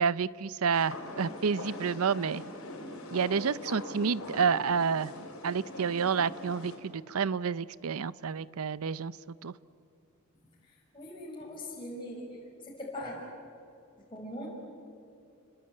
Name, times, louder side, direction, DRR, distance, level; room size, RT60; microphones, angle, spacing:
voice 1, 0.0-2.4 3.1-5.1 5.4-9.1 9.4-9.5, right 6 dB, 75° right, 19 dB, 0.6 m, -29 dB
sound 1, 0.7-6.8, left 2 dB, 70° left, 4.7 m, -42 dB
voice 2, 10.9-12.4 12.6-13.2 14.1-14.5, left 1 dB, 20° left, -4 dB, 5.2 m, -40 dB
29.5 x 21.5 x 8.8 m, 2.5 s
head